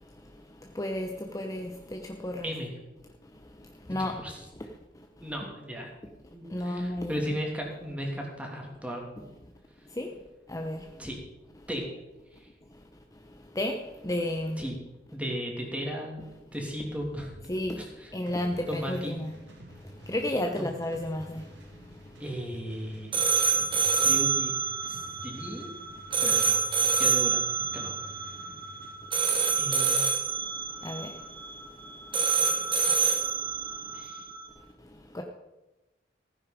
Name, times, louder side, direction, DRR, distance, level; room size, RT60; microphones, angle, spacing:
voice 1, 0.7-2.5 3.9-4.1 6.5-7.2 10.0-10.1 10.5-10.8 13.6-13.8 14.0-14.6 17.5-17.8 18.1-19.3 20.1-21.4 30.8-31.1 35.1-35.2, left 1 dB, 20° left, 3 dB, 0.9 m, -31 dB
voice 2, 4.0-4.4 5.2-5.9 6.3-9.0 11.0-11.2 11.7-11.9 12.3-12.5 14.6-14.8 15.1-16.2 16.5-17.3 17.8-18.1 18.7-19.2 20.6-20.7 22.2-23.1 24.0-24.5 24.8-25.7 26.2-26.6 27.0-27.4 27.7-27.9 29.6-30.1 33.9-34.2, equal, 10° right, 0 dB, 2.7 m, -35 dB
sound 1, 18.3-29.0, equal, 85° right, 2.5 m, -49 dB
sound 2, 23.1-34.5, right 5 dB, 30° right, 2.2 m, -27 dB
15.5 x 9.8 x 5.1 m, 1.0 s
head